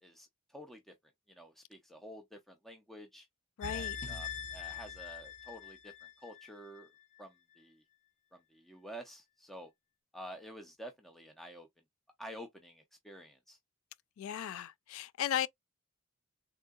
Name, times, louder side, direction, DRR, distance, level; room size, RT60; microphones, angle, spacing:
voice 1, 0.0-0.9 1.3-3.3 3.7-6.9 7.2-7.8 8.3-9.7 10.1-11.7 12.2-13.6, equal, ahead, 0.4 m, -50 dB
voice 2, 3.6-4.0 14.2-15.5, left 10 dB, 70° left, 0.3 m, -36 dB
sound 1, 3.6-6.8 7.2-7.3, left 7 dB, 35° left, 0.8 m, -42 dB
3.6 x 2.7 x 2.3 m
head